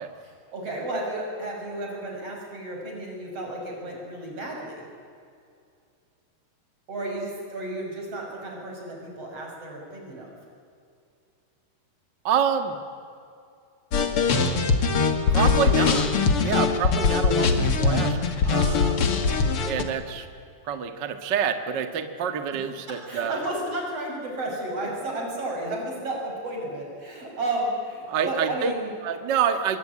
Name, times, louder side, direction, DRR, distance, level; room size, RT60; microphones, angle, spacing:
voice 1, 0.2-4.8 6.9-10.3 22.9-28.9, right 1 dB, 35° right, -1 dB, 7.1 m, -32 dB
voice 2, 12.2-12.8 15.3-16.1 16.4-18.2 18.4-19.0 19.6-20.3 20.6-23.4 28.1-28.7 29.0-29.8, right 7 dB, 75° right, 8 dB, 1.0 m, -27 dB
sound 1, 13.9-19.8, left 4 dB, 45° left, 2.0 m, -21 dB
25.5 x 22.5 x 9.8 m, 2.4 s
omnidirectional pair, 4.9 m